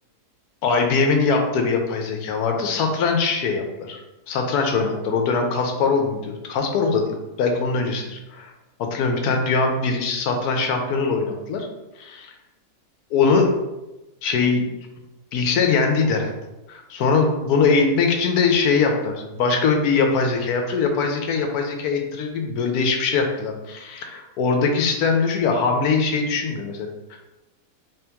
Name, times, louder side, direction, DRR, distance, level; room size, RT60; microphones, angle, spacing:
voice 1, 0.6-4.0 4.3-8.5 8.8-11.7 12.0-12.3 13.1-13.5 14.2-14.7 15.3-16.4 16.7-27.2, left 4 dB, 75° left, 4 dB, 1.1 m, -22 dB
3.8 x 2.9 x 3.4 m, 1.0 s
omnidirectional pair, 1.7 m